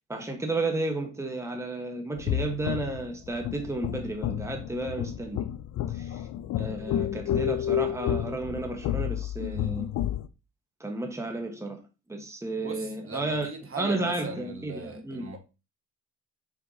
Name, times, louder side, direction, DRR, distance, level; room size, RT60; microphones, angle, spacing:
voice 1, 0.1-5.4 5.9-6.3 6.6-9.9 10.8-11.8 12.1-15.3, right 2 dB, 10° right, 1.2 m, -32 dB
snippet of drums from jazz tune, 2.2-10.3, left 11 dB, 70° left, 0.5 m, -30 dB
voice 2, 12.6-15.4, right 4 dB, 45° right, 1.5 m, -39 dB
6.2 x 5.6 x 2.7 m
cardioid pair, 90°, 30 cm